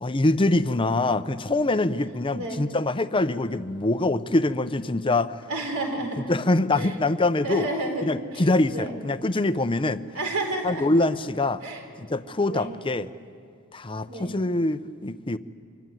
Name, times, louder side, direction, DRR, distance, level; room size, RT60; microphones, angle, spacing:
voice 1, 0.0-5.3 6.3-7.7 8.0-10.0 10.6-11.6 12.1-13.1 13.7-15.4, left 2 dB, 25° left, 12 dB, 0.7 m, -24 dB
voice 2, 2.3-2.6 5.5-6.3 6.8-6.9 7.4-8.0 8.3-9.0 10.1-10.9 11.6-11.8 12.5-12.7 14.1-14.3, right 2 dB, 80° right, 3 dB, 4.4 m, -31 dB
24.5 x 24.5 x 9.2 m, 2.3 s
head